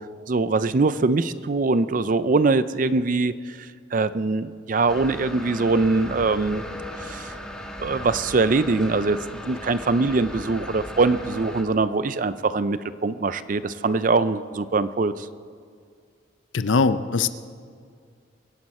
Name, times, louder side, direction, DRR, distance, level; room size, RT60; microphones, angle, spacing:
voice 1, 0.3-6.6 7.0-7.3 7.8-9.2 9.4-15.3, right 3 dB, 45° right, 14 dB, 0.5 m, -23 dB
sound 1, 4.9-11.6, equal, 5° left, 1.4 m, -37 dB
voice 2, 16.5-17.3, left 4 dB, 85° left, 12 dB, 0.6 m, -21 dB
24.0 x 11.0 x 4.3 m, 2.1 s
head